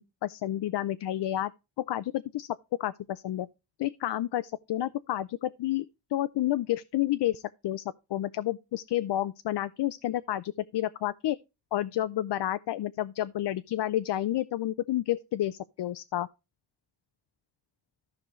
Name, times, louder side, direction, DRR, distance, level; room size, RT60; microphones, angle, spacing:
voice 1, 0.0-1.5 1.8-2.5 2.8-3.5 3.8-11.4 11.7-16.3, left 13 dB, 80° left, 0.5 m, -30 dB
14.0 x 5.2 x 3.0 m
wide cardioid pair, 90°, 40 cm